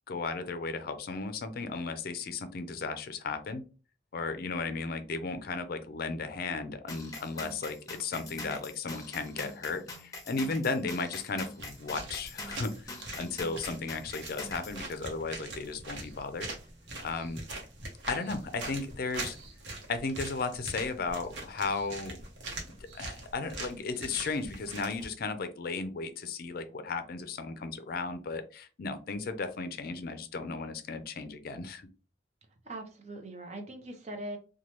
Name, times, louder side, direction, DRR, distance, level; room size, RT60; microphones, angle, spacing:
voice 1, 0.1-3.6 4.1-16.5 17.0-17.4 18.1-19.4 19.9-22.2 22.9-31.9, left 4 dB, 55° left, 9 dB, 0.4 m, -35 dB
sound 1, 6.9-14.8, left 2 dB, 20° left, 0.8 m, -43 dB
sound 2, 11.6-25.1, right 2 dB, 80° right, 0.9 m, -42 dB
voice 2, 32.6-34.4, right 1 dB, 40° right, 4 dB, 0.6 m, -41 dB
3.1 x 2.2 x 2.9 m, 0.36 s
head